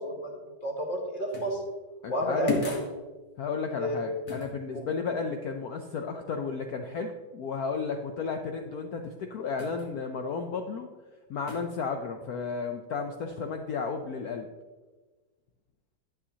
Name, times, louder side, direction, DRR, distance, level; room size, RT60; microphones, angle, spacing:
voice 1, 0.0-1.6 2.1-2.7 3.7-4.0 4.7-4.8 7.9-8.0, right 1 dB, 30° left, 0 dB, 1.3 m, -31 dB
sound 1, 1.3-1.6 2.5-3.0 4.3-4.5 9.6-9.9 11.5-11.8, left 4 dB, 50° left, 1.6 m, -33 dB
voice 2, 2.0-2.5 3.4-10.9 11.3-14.5, left 5 dB, 85° left, 5 dB, 0.8 m, -33 dB
11.0 x 6.9 x 2.8 m, 1.3 s
omnidirectional pair, 2.2 m